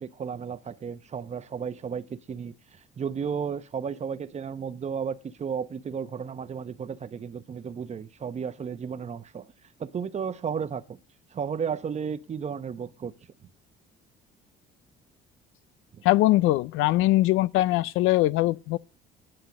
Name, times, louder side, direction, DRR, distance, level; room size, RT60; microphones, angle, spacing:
voice 1, 0.0-9.5 9.8-11.0 11.3-13.1 15.9-16.0, right 7 dB, 35° right, 0.9 m, -33 dB
voice 2, 16.0-18.8, left 17 dB, 85° left, 0.5 m, -22 dB
10.5 x 7.7 x 7.6 m
cardioid pair, 115°, 20 cm